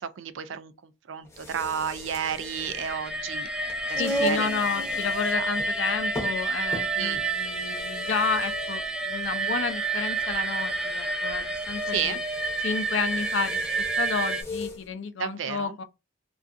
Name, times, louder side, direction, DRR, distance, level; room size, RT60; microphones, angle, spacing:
voice 1, 0.0-3.5 3.9-4.5 5.0-5.5 7.0-7.2 11.9-12.2 15.2-15.8, right 8 dB, 85° right, 0.4 m, -32 dB
sound 1, 1.2-14.8, right 1 dB, 15° left, 0.7 m, -37 dB
sound 2, 2.2-14.4, right 2 dB, 5° right, 0.3 m, -29 dB
voice 2, 4.0-12.2 12.6-15.8, left 5 dB, 70° left, 0.4 m, -31 dB
2.5 x 2.3 x 2.4 m
head